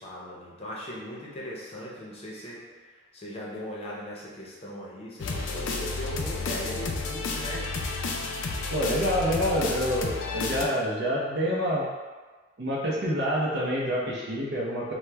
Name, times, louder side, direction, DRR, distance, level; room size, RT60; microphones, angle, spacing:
voice 1, 0.0-7.7, equal, 30° left, -5 dB, 0.6 m, -39 dB
sound 1, 5.2-10.7, left 3 dB, 80° left, 0.4 m, -31 dB
voice 2, 8.7-11.9 12.6-14.9, equal, 60° right, -4 dB, 0.7 m, -27 dB
3.0 x 2.1 x 3.3 m, 1.3 s
head